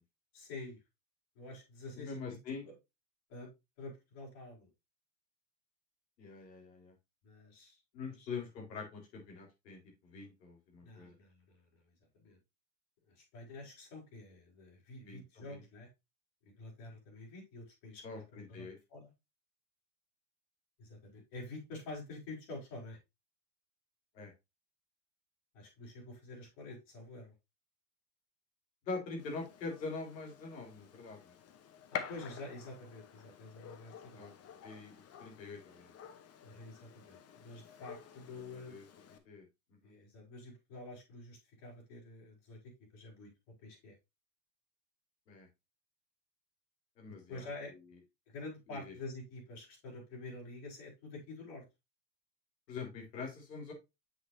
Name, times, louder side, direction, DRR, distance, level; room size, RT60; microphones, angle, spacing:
voice 1, 0.3-0.8 1.4-2.4 2.7-2.8 3.3-3.5 3.8-4.7 7.2-7.8 8.2-8.3 10.8-12.4 13.1-15.9 16.5-19.1 20.8-23.0 25.5-27.3 31.9-34.3 36.4-38.8 39.8-42.6 42.9-44.0 47.1-47.7 48.3-51.6, left 2 dB, 55° left, -2 dB, 5.2 m, -48 dB
voice 2, 1.9-2.7 6.2-6.9 7.9-11.2 15.1-15.6 18.0-18.8 24.1-24.3 28.8-31.3 34.1-34.3 34.6-35.9 38.5-38.8 39.3-39.4 39.7-39.9 45.3-45.5 47.0-47.5 48.7-48.9 52.7-53.7, left 4 dB, 80° left, 0 dB, 4.2 m, -44 dB
Gunshot gunfire, 29.2-39.2, left 8 dB, 30° left, 1.0 m, -49 dB
7.9 x 6.3 x 2.7 m, 0.22 s
hypercardioid pair, 105°, 50 cm